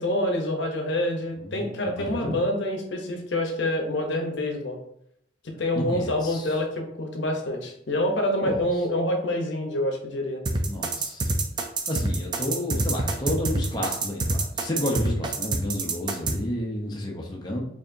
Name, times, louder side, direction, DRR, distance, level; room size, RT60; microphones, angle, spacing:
voice 1, 0.0-4.8 5.4-10.4, left 1 dB, 80° left, 3 dB, 0.7 m, -27 dB
voice 2, 1.4-2.4 5.7-6.6 8.4-8.6 10.7-11.3 11.9-17.6, left 1 dB, 25° left, -1 dB, 0.6 m, -31 dB
sound 1, 10.5-16.4, right 2 dB, 25° right, 0.4 m, -26 dB
4.6 x 2.9 x 2.6 m, 0.74 s
head